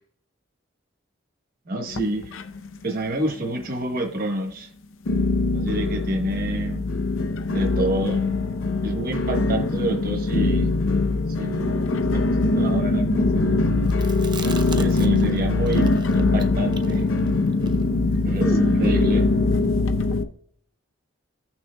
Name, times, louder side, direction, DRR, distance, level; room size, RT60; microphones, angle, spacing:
voice 1, 1.6-2.3 2.8-4.7 5.5-6.8 7.5-8.2 8.8-10.7 11.4-13.9 14.7-17.0 18.2-19.3, right 1 dB, 50° right, 4 dB, 1.1 m, -28 dB
sound 1, 1.9-2.8 3.1-3.7 4.2-4.3 5.1-20.2, left 3 dB, 90° left, 0.6 m, -22 dB
Chewing mastication, 13.9-15.4 15.6-19.0, right 3 dB, 25° right, 0.5 m, -35 dB
15.0 x 6.2 x 2.2 m, 0.65 s
head